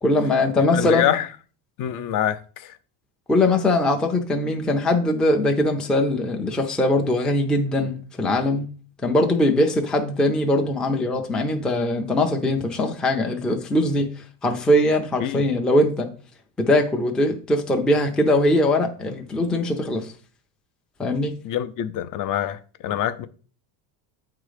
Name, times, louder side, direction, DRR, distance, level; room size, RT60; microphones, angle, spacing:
voice 1, 0.0-1.1 3.3-8.7 9.0-16.1 16.6-20.1 21.0-21.3, left 1 dB, ahead, 0.4 m, -21 dB
voice 2, 0.7-1.3 1.8-2.7 15.2-15.5 21.4-23.3, left 11 dB, 40° left, 0.6 m, -25 dB
9.0 x 3.8 x 5.0 m
cardioid pair, 160°, 49 cm